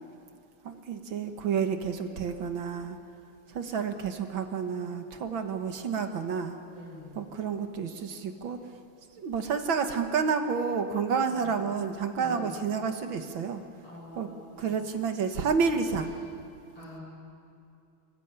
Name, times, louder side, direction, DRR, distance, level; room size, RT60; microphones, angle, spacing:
voice 1, 0.6-3.0 3.5-6.6 7.2-8.6 9.1-13.6 14.2-14.3 14.6-16.1, right 6 dB, 65° right, 7 dB, 2.0 m, -30 dB
voice 2, 6.7-7.2 11.3-11.6 12.1-12.6 13.8-14.7 16.8-17.0, left 1 dB, 65° left, -4 dB, 8.2 m, -45 dB
26.0 x 21.0 x 8.9 m, 2.6 s
omnidirectional pair, 2.4 m